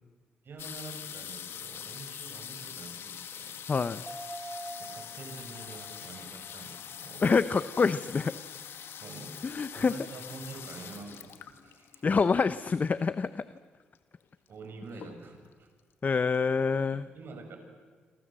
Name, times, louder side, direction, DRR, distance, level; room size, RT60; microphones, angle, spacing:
voice 1, 0.4-3.6 4.8-7.3 8.8-12.1 14.5-15.7 16.9-17.6, right 3 dB, 65° right, 5 dB, 7.0 m, -47 dB
sound 1, 0.6-13.1 13.9-14.0 14.2-14.6 14.9-15.5 16.1-16.2 16.3-16.4, left 8 dB, 75° left, 2.0 m, -44 dB
voice 2, 3.7-4.0 7.2-8.4 9.4-10.0 12.0-13.4 16.0-17.1, left 5 dB, 45° left, 13 dB, 0.9 m, -26 dB
sound 2, 4.1-7.8 8.1-8.2, right 1 dB, 15° right, 8.0 m, -46 dB
27.5 x 26.5 x 7.8 m, 1.5 s
cardioid pair, 65°, 4 cm